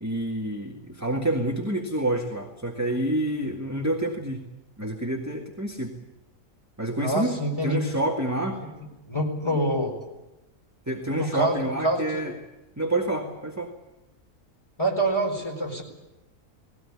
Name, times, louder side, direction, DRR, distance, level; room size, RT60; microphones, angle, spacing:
voice 1, 0.0-4.4 4.8-5.9 6.8-8.6 10.9-12.3 12.8-13.7, right 1 dB, 10° right, 0 dB, 1.9 m, -28 dB
voice 2, 7.0-7.8 9.1-9.9 11.2-11.5 11.8-12.2 14.8-15.8, right 1 dB, 15° left, 1 dB, 4.4 m, -25 dB
19.5 x 17.5 x 9.8 m, 1.0 s
omnidirectional pair, 1.7 m